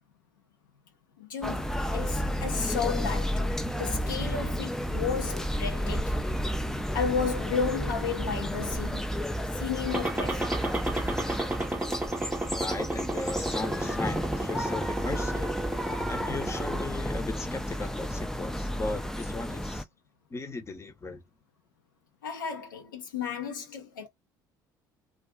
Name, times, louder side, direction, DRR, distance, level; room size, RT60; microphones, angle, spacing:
voice 1, 1.2-6.2 6.9-9.1 9.5-10.5 22.2-24.1, left 6 dB, 80° left, 0.7 m, -33 dB
sound 1, 1.4-19.8, equal, 5° left, 0.4 m, -32 dB
sound 2, 9.9-16.8, right 1 dB, 15° right, 0.9 m, -33 dB
voice 2, 12.6-15.5 16.1-19.8 20.3-21.2, left 3 dB, 25° left, 0.8 m, -37 dB
2.4 x 2.4 x 2.2 m
figure-of-eight pair, 55°, 11 cm